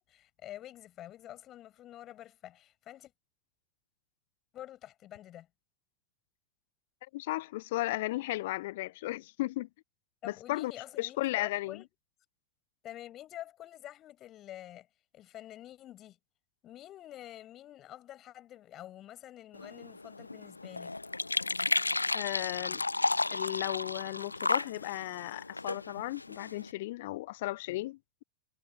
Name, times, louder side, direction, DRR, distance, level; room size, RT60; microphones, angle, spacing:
voice 1, 0.0-3.1 4.5-5.5 10.2-11.9 12.8-14.9 15.1-16.2 16.6-20.9, left 13 dB, 30° left, 7.7 m, -48 dB
voice 2, 7.0-9.7 10.2-10.7 11.0-11.8 22.1-22.8 23.3-28.2, left 18 dB, 50° left, 1.2 m, -35 dB
sound 1, 19.5-26.7, left 3 dB, 80° left, 0.7 m, -33 dB
figure-of-eight pair, 90°, 0 cm